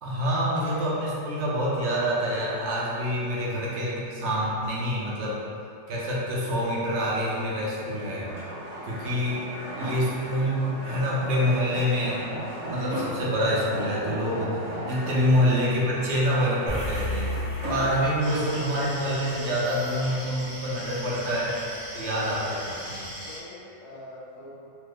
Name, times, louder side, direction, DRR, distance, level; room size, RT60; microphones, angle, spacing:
voice 1, 0.0-5.4 5.9-8.4 8.8-9.5 9.8-12.3 12.7-17.3 17.6-21.6 21.9-23.1, equal, 70° right, -6 dB, 0.9 m, -26 dB
sound 1, 6.4-20.2, right 1 dB, 90° right, 1.2 m, -37 dB
sound 2, 16.7-21.2, left 1 dB, 10° left, 0.5 m, -34 dB
sound 3, 18.2-23.4, equal, 35° right, 1.0 m, -40 dB
voice 2, 23.2-24.7, left 1 dB, 75° left, -6 dB, 1.0 m, -45 dB
3.1 x 2.1 x 3.4 m, 2.7 s
omnidirectional pair, 1.3 m